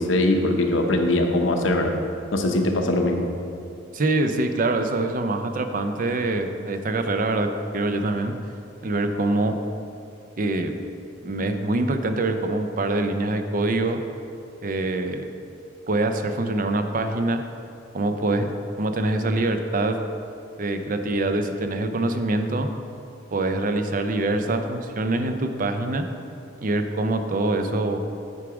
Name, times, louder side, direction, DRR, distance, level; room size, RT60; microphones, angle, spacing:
voice 1, 0.0-1.9 2.3-3.3, left 1 dB, 80° left, 3 dB, 0.8 m, -21 dB
voice 2, 3.9-8.3 8.8-9.6 10.4-10.7 11.2-14.0 14.6-15.2 15.9-17.4 17.9-18.5 18.8-20.0 20.6-22.7 23.3-26.1 26.6-28.0, right 2 dB, 45° right, 7 dB, 0.5 m, -24 dB
9.5 x 4.7 x 5.0 m, 2.5 s
head